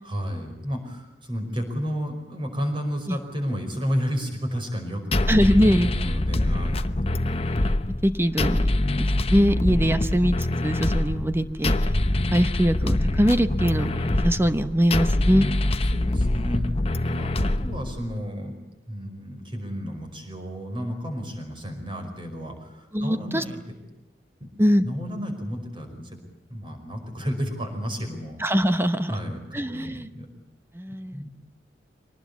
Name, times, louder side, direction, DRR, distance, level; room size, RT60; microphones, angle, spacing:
voice 1, 0.0-5.3 5.8-6.9 15.9-18.6 18.8-23.6 24.4-24.5 24.8-26.2 26.5-28.4 29.1-30.3 30.9-31.3, equal, 30° right, 5 dB, 5.3 m, -32 dB
sound 1, 5.1-18.1, left 1 dB, 35° left, 0.9 m, -24 dB
voice 2, 5.3-6.2 8.0-11.8 12.3-15.5 22.9-23.4 24.6-24.9 28.4-29.1 29.5-30.1 30.7-31.2, equal, 15° right, 10 dB, 0.9 m, -22 dB
24.0 x 19.0 x 8.4 m, 1.0 s
head